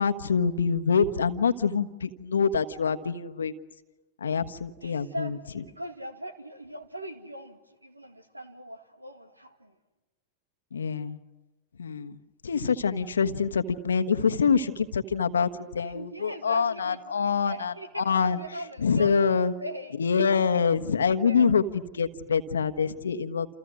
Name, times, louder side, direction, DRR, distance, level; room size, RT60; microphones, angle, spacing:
voice 1, 0.0-3.5 4.2-5.6 10.7-11.2 11.7-19.5 19.9-23.5, left 6 dB, 70° left, 10 dB, 1.3 m, -26 dB
voice 2, 4.8-9.7 15.9-19.1 19.6-19.9 21.2-21.4, right 1 dB, 85° right, 9 dB, 2.2 m, -40 dB
29.5 x 28.5 x 6.3 m, 1.1 s
figure-of-eight pair, 90°, 0 cm